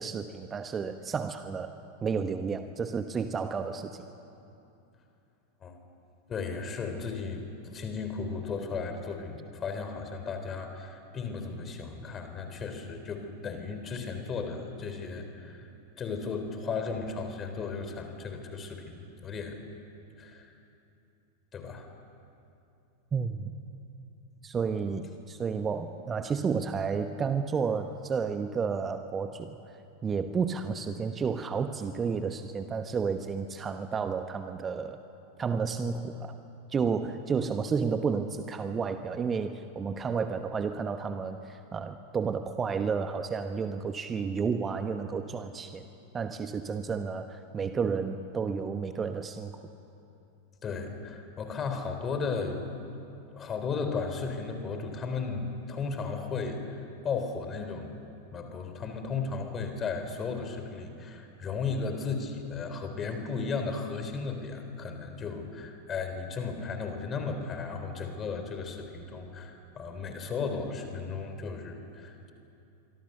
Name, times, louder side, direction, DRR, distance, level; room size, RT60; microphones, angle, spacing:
voice 1, 0.0-1.7 2.0-4.0 23.1-23.5 24.4-29.6 30.0-35.0 35.4-36.4 36.7-45.8 46.1-49.6, right 5 dB, 20° right, 9 dB, 1.0 m, -31 dB
voice 2, 6.3-15.7 16.0-19.6 20.2-20.5 21.5-21.9 50.6-52.7 53.3-57.9 58.3-72.3, left 4 dB, 25° left, 6 dB, 3.6 m, -35 dB
25.0 x 24.5 x 6.7 m, 2.8 s
figure-of-eight pair, 90°, 0 cm